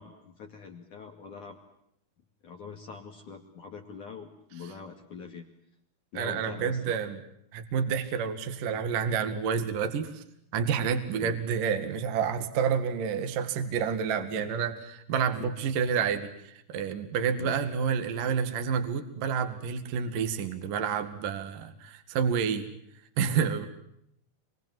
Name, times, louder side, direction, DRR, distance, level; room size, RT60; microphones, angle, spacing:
voice 1, 0.0-1.6 2.4-5.5 6.1-7.0 11.1-11.3 15.4-15.5 17.4-17.5, left 5 dB, 45° left, 2 dB, 3.0 m, -43 dB
voice 2, 6.1-7.2 7.5-10.2 10.5-22.7 23.2-23.7, right 7 dB, 50° right, 8 dB, 3.0 m, -29 dB
28.5 x 25.0 x 7.8 m, 0.76 s
omnidirectional pair, 6.0 m